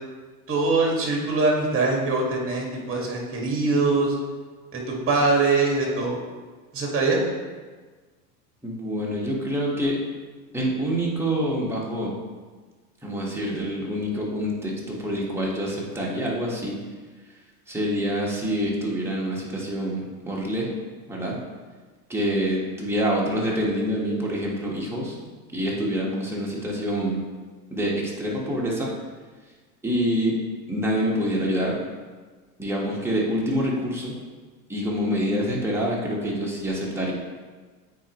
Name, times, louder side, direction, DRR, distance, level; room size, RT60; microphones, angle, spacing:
voice 1, 0.5-4.1 4.7-6.2 6.7-7.2, right 3 dB, 25° right, -1 dB, 2.0 m, -23 dB
voice 2, 8.6-10.0 10.5-12.1 13.0-16.8 17.7-20.7 21.1-21.4 22.1-25.2 25.5-27.2 27.7-28.9 29.8-30.4 30.7-31.8 32.6-34.1 34.7-37.1, equal, 5° right, -4 dB, 1.6 m, -26 dB
8.5 x 4.5 x 3.1 m, 1.4 s
hypercardioid pair, 100°, 47 cm